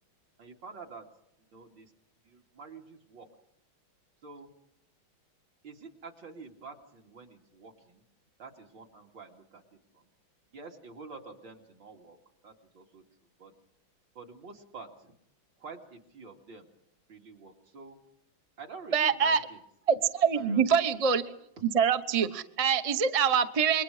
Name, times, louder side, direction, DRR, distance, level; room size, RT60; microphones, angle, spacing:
voice 1, 0.4-1.1 1.4-1.9 2.2-3.3 4.2-4.5 5.6-8.0 8.4-10.1 10.5-12.2 12.4-13.0 13.4-13.5 14.1-15.1 15.6-16.7 17.1-18.0 18.6-19.6 20.3-20.8, right 4 dB, 60° right, 2 dB, 3.4 m, -48 dB
voice 2, 18.9-19.4 19.9-21.2 21.7-23.8, right 7 dB, 30° right, 8 dB, 0.6 m, -25 dB
27.5 x 22.5 x 5.0 m, 0.75 s
omnidirectional pair, 2.3 m